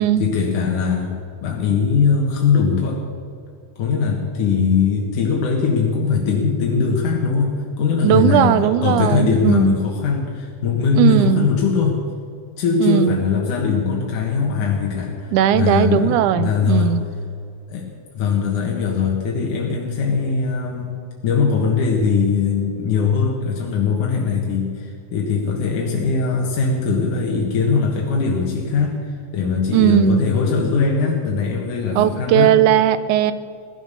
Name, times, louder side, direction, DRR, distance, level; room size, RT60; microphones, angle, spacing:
voice 1, 0.2-3.0 3.8-12.0 12.6-16.9 17.7-17.9 18.1-32.5, left 5 dB, 85° left, -1 dB, 3.1 m, -20 dB
voice 2, 8.0-9.8 11.0-11.5 12.8-13.2 15.3-17.0 29.7-30.3 32.0-33.3, right 11 dB, 90° right, 14 dB, 2.2 m, -17 dB
16.5 x 11.0 x 6.8 m, 2.2 s
omnidirectional pair, 3.5 m